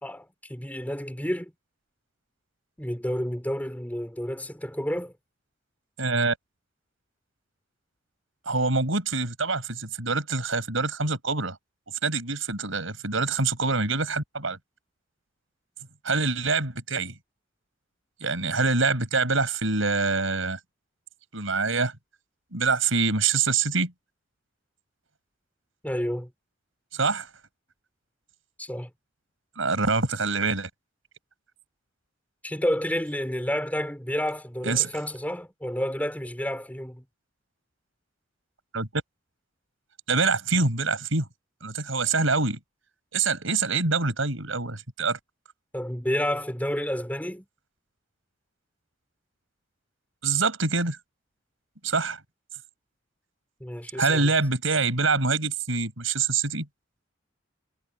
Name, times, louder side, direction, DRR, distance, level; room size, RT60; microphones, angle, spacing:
voice 1, 0.0-1.5 2.8-5.1 25.8-26.3 28.6-28.9 32.4-37.0 45.7-47.5 53.6-54.3, equal, 10° left, 4.1 m, -30 dB
voice 2, 6.0-6.4 8.5-11.6 12.0-14.6 16.0-17.1 18.2-20.6 21.3-21.9 22.5-23.9 26.9-27.3 29.6-30.7 34.6-34.9 38.7-38.9 40.1-41.3 41.6-42.6 43.1-45.2 50.2-51.0 51.8-52.2 54.0-56.7, right 4 dB, 85° right, 5.2 m, -25 dB
head